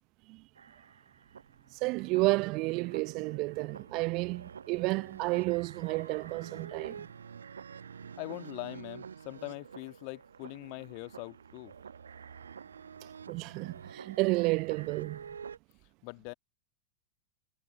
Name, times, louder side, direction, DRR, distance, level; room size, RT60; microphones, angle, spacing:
sound 1, 0.5-15.6, right 6 dB, 70° right, 1.1 m, -48 dB
voice 1, 1.8-7.1 13.3-15.2, right 24 dB, 40° right, 0.7 m, -31 dB
voice 2, 8.0-11.7 16.0-16.3, left 40 dB or more, 45° left, 1.5 m, -42 dB
figure-of-eight pair, 90°, 0 cm